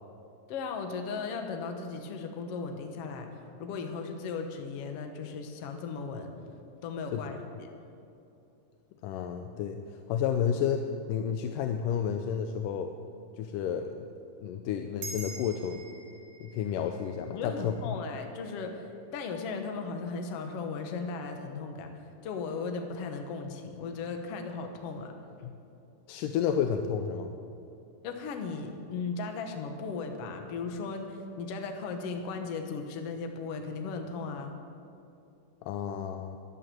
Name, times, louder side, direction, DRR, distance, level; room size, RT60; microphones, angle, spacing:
voice 1, 0.5-3.3 3.6-6.3 6.8-7.7 17.3-21.9 22.2-25.1 28.0-34.5, left 4 dB, 60° left, 5 dB, 1.9 m, -36 dB
voice 2, 9.0-12.9 13.4-14.1 14.4-15.8 16.4-18.0 25.4-25.5 26.1-27.3 35.6-36.4, left 8 dB, 85° left, 6 dB, 2.3 m, -31 dB
sound 1, 15.0-19.7, right 3 dB, 70° right, 2.6 m, -47 dB
12.5 x 11.0 x 7.6 m, 2.7 s
omnidirectional pair, 3.8 m